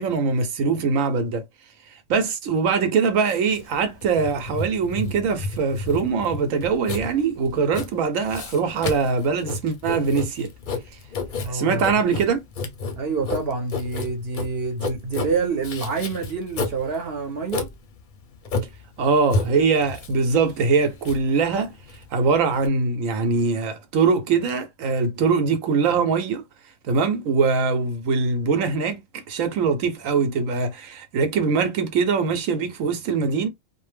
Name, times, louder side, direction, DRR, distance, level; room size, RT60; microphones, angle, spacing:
voice 1, 0.0-1.4 2.1-10.5 11.5-12.5 19.0-21.7 22.1-26.4 26.8-33.5, right 5 dB, 80° right, 1.1 m, -22 dB
Writing, 3.5-22.7, left 3 dB, 55° left, 0.6 m, -31 dB
voice 2, 11.4-12.1 12.9-17.7, right 4 dB, 55° right, 0.9 m, -27 dB
2.4 x 2.1 x 3.2 m
omnidirectional pair, 1.4 m